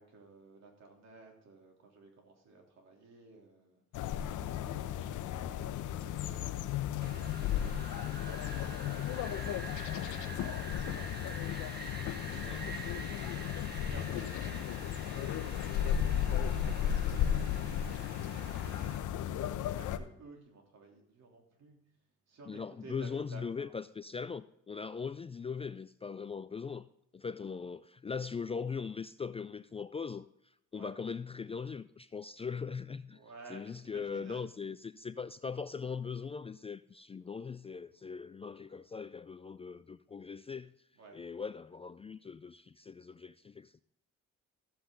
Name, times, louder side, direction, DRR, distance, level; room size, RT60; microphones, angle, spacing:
voice 1, 0.0-3.8 4.2-7.5 8.1-15.5 16.1-18.9 19.4-21.8 22.3-23.7 30.7-31.0 33.1-34.4 37.9-38.0 38.7-38.8 40.1-40.2 41.0-41.2, right 3 dB, 60° right, 3.2 m, -55 dB
sound 1, 3.9-20.0, left 10 dB, 80° left, 0.8 m, -35 dB
Wind, 7.0-19.0, right 3 dB, 35° right, 1.7 m, -47 dB
voice 2, 22.5-26.9 27.1-30.3 30.7-33.2 33.5-40.7 41.1-43.8, left 5 dB, 20° left, 0.3 m, -40 dB
14.0 x 8.0 x 3.8 m
cardioid pair, 90°, 30 cm